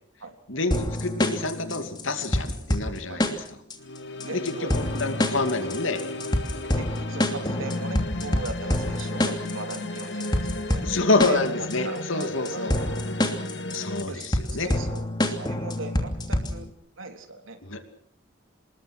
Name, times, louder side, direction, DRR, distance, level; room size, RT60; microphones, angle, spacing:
voice 1, 0.5-3.4 4.3-6.0 10.8-12.8 13.7-14.7 17.7-17.8, left 3 dB, 80° left, 7 dB, 2.6 m, -27 dB
sound 1, 0.7-16.7, left 1 dB, 20° left, 2.9 m, -27 dB
sound 2, 3.8-14.0, left 1 dB, 60° left, 2.2 m, -35 dB
voice 2, 4.1-4.8 5.7-5.8 6.6-10.9 11.3-11.5 11.8-12.9 14.1-14.3 14.6-16.7 17.0-17.7, right 2 dB, 85° right, 5 dB, 3.5 m, -39 dB
26.5 x 21.0 x 6.2 m, 0.66 s
head